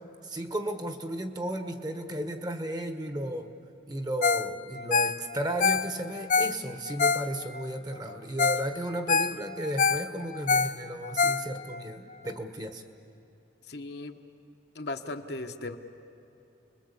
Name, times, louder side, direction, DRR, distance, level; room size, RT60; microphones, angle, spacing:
voice 1, 0.2-3.5 3.9-12.8, right 1 dB, 20° right, 7 dB, 1.2 m, -34 dB
Ringtone, 4.2-4.5 4.8-7.6 8.1-8.2 8.4-8.7 8.9-11.8 12.3-12.4, left 5 dB, 40° left, 0.5 m, -26 dB
voice 2, 13.7-14.2 14.7-15.8, left 2 dB, 60° left, 5 dB, 1.2 m, -37 dB
29.5 x 22.0 x 8.4 m, 2.9 s
head